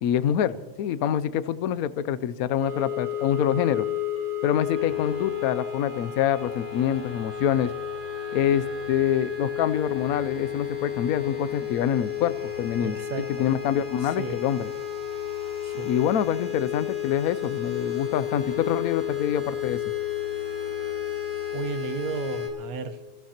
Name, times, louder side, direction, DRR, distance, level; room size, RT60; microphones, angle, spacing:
voice 1, 0.0-3.9 4.4-7.7 8.3-13.0 13.4-14.7 15.8-19.8, left 9 dB, 75° left, 1.1 m, -26 dB
sound 1, 2.6-22.5, left 10 dB, 10° left, 3.4 m, -32 dB
voice 2, 12.8-13.5 14.0-14.4 15.6-15.9 21.5-23.0, right 6 dB, 70° right, 1.3 m, -34 dB
30.0 x 14.0 x 2.9 m
omnidirectional pair, 1.6 m